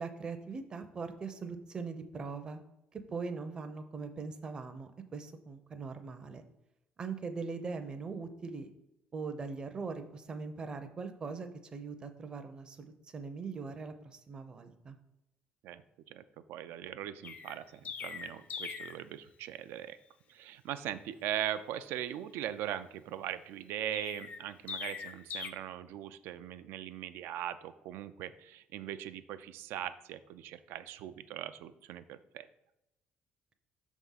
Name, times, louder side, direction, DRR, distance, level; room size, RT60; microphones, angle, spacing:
voice 1, 0.0-2.6 2.9-6.4 7.0-8.7 9.1-15.0, right 4 dB, 25° right, 7 dB, 0.5 m, -41 dB
voice 2, 16.5-20.0 20.3-32.5, right 11 dB, 90° right, 11 dB, 0.4 m, -40 dB
Chirp tweet, 17.2-19.0 23.9-25.5, left 6 dB, 40° left, 0.4 m, -41 dB
5.8 x 3.6 x 5.5 m, 0.88 s
cardioid pair, 180°, 4 cm